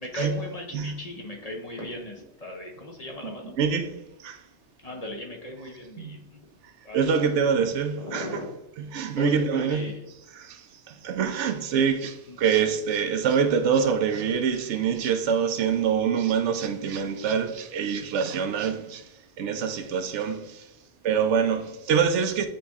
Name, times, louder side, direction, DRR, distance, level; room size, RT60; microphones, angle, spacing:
voice 1, 0.0-3.5 4.8-6.5 6.8-7.4 8.0-8.5 9.2-10.0 12.3-12.4, left 1 dB, 35° left, 0.8 m, -37 dB
voice 2, 3.2-4.4 6.0-6.2 6.9-8.4 8.8-9.9 10.3-19.1 19.4-20.7 21.0-22.5, right 7 dB, 80° right, 0.9 m, -25 dB
8.8 x 3.0 x 3.5 m
omnidirectional pair, 1.2 m